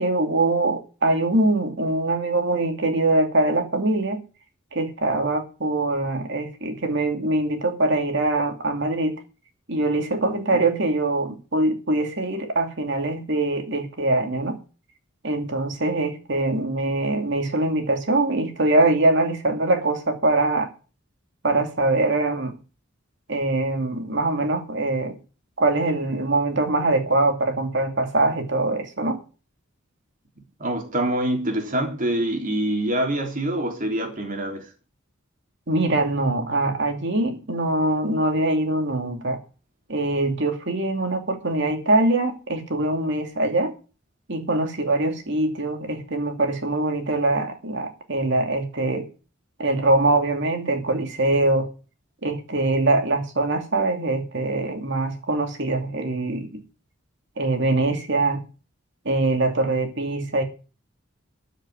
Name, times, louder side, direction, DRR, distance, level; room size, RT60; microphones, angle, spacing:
voice 1, 0.0-4.2 4.7-9.2 9.7-14.6 15.2-20.7 21.4-22.6 23.3-25.2 25.6-29.2 35.7-39.4 39.9-43.7 44.3-49.1 49.6-51.7 52.2-56.6 57.4-58.4 59.0-60.4, right 2 dB, 60° right, 2.6 m, -23 dB
voice 2, 10.3-10.6 30.6-34.7, right 1 dB, 40° right, 3.5 m, -25 dB
13.5 x 6.6 x 8.7 m
head